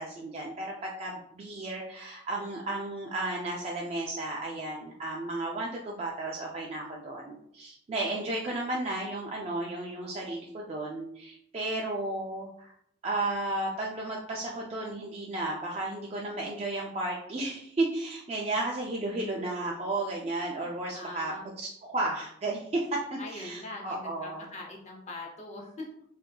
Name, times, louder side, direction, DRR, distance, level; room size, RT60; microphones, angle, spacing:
voice 1, 0.0-12.7 13.0-24.5, right 2 dB, 35° right, -2 dB, 0.3 m, -33 dB
voice 2, 20.6-21.5 23.2-25.9, left 2 dB, 35° left, 0 dB, 0.7 m, -42 dB
3.6 x 2.6 x 2.2 m, 0.71 s
head